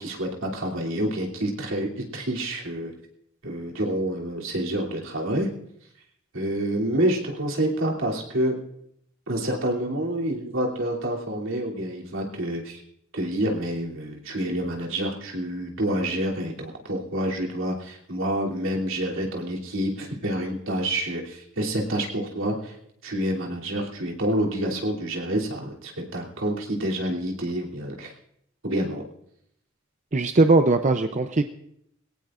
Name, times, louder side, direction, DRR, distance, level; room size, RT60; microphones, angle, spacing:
voice 1, 0.0-2.9 3.4-5.5 6.3-8.5 9.3-12.8 13.1-22.7 23.0-28.1 28.6-29.0, right 1 dB, 75° right, -2 dB, 3.0 m, -28 dB
voice 2, 30.1-31.4, right 3 dB, 35° right, 7 dB, 0.6 m, -19 dB
21.5 x 17.5 x 2.5 m, 0.74 s
head